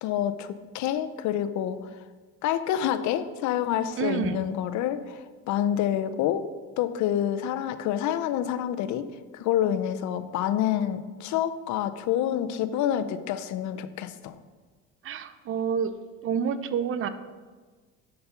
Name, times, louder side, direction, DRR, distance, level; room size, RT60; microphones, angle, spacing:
voice 1, 0.0-1.9 2.4-6.5 6.8-9.1 9.3-14.4, left 10 dB, 65° left, 12 dB, 0.7 m, -27 dB
voice 2, 4.0-4.4 15.0-15.9 16.2-17.1, right 7 dB, 40° right, 12 dB, 0.6 m, -28 dB
6.8 x 5.3 x 5.7 m, 1.4 s
supercardioid pair, 105°, 32 cm